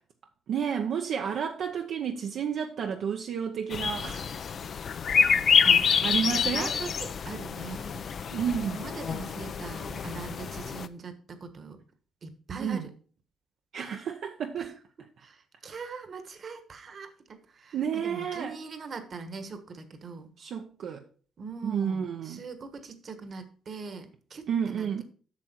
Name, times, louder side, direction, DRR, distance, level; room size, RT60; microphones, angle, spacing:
voice 1, 0.5-4.3 6.0-6.7 8.3-8.8 12.6-12.9 13.7-14.7 17.7-18.5 20.4-21.0 21.6-22.4 24.5-25.0, right 7 dB, 65° right, 0.8 m, -31 dB
sound 1, 3.7-10.9, left 6 dB, 50° left, 0.5 m, -27 dB
voice 2, 5.6-8.1 8.6-11.8 12.2-12.9 14.6-14.7 15.2-20.3 21.4-25.0, right 4 dB, 45° right, 1.3 m, -41 dB
8.4 x 6.1 x 4.4 m
cardioid pair, 100°, 0 cm